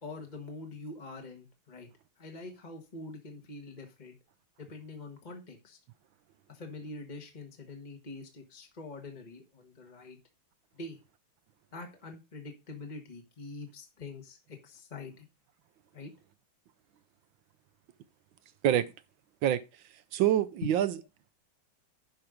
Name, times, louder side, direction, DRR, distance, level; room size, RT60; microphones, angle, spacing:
voice 1, 0.0-1.9 2.2-4.2 4.6-5.8 6.5-10.2 10.7-11.0 11.7-15.3 15.9-16.1 20.6-20.7, left 3 dB, 25° left, 1.3 m, -44 dB
voice 2, 20.1-20.9, right 11 dB, 70° right, 1.3 m, -25 dB
10.5 x 5.6 x 5.0 m
omnidirectional pair, 2.4 m